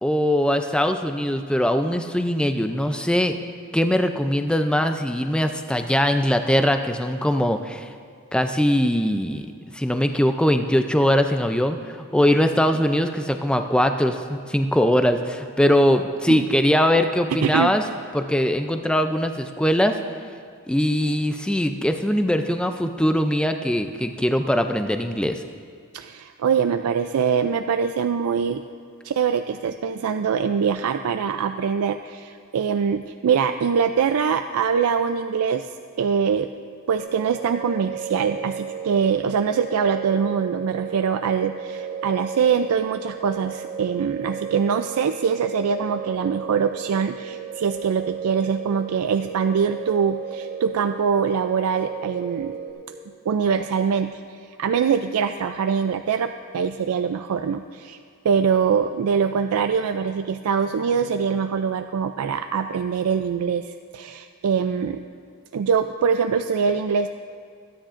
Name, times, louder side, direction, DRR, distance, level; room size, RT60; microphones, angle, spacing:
voice 1, 0.0-3.4 3.7-7.9 8.3-9.5 9.7-17.8 18.1-20.0 20.7-25.4, equal, 5° left, 7 dB, 0.4 m, -21 dB
voice 2, 17.3-17.7 25.9-28.6 29.0-35.7 36.0-36.5 36.9-52.6 53.3-58.0 58.2-65.0 65.5-67.1, right 6 dB, 80° right, 8 dB, 0.4 m, -23 dB
sound 1, 37.0-52.7, right 7 dB, 30° right, 1.4 m, -34 dB
25.5 x 10.0 x 2.5 m, 2.1 s
head